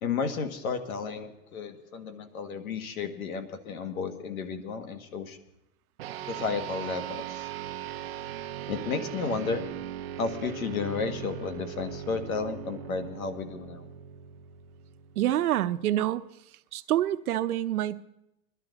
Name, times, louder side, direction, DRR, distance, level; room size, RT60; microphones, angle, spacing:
voice 1, 0.0-5.4 6.3-7.5 8.7-9.7 10.2-13.9, left 5 dB, 70° left, 1.7 m, -33 dB
sound 1, 6.0-15.7, right 10 dB, 45° right, 0.7 m, -39 dB
voice 2, 15.2-16.3 16.7-18.0, right 13 dB, 80° right, 0.8 m, -27 dB
21.0 x 12.0 x 3.9 m
supercardioid pair, 175°, 44 cm